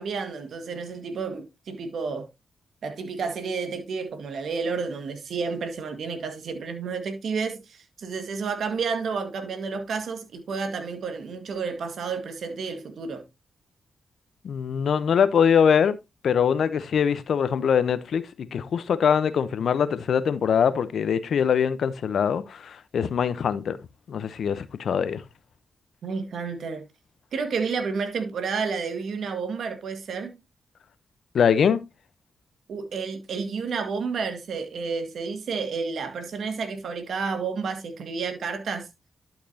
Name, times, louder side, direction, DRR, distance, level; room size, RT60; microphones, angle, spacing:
voice 1, 0.0-2.3 2.8-13.2 26.0-26.8 27.3-30.4 32.7-38.9, right 5 dB, 70° right, 1.8 m, -31 dB
voice 2, 14.4-16.0 16.2-18.2 18.5-23.8 24.1-25.2 31.3-31.8, left 7 dB, 70° left, 0.8 m, -23 dB
11.5 x 5.9 x 2.8 m
supercardioid pair, 40°, 0 cm